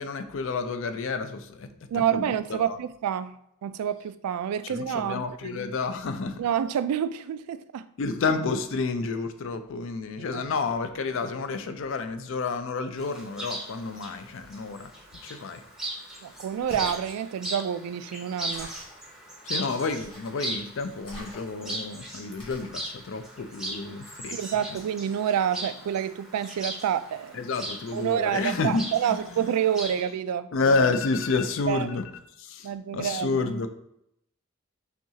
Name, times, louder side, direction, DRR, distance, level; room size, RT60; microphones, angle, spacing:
voice 1, 0.0-1.7 1.9-2.2 2.5-2.8 4.6-6.4 8.0-14.9 15.2-15.6 19.5-24.6 27.3-29.4 30.5-32.1 32.4-33.7, left 4 dB, 60° left, 9 dB, 0.4 m, -30 dB
voice 2, 1.9-5.6 6.4-7.9 10.3-10.4 16.2-18.7 24.3-27.4 27.9-30.5 31.7-31.9 32.6-33.4, right 9 dB, 90° right, 15 dB, 0.3 m, -28 dB
Chirp tweet, 13.0-30.1, right 1 dB, ahead, 0.6 m, -39 dB
sound 1, 16.5-17.0 18.5-19.0 20.0-20.5 21.0-21.7 22.4-22.8, equal, 20° left, 1.2 m, -43 dB
5.7 x 2.3 x 2.8 m, 0.77 s
head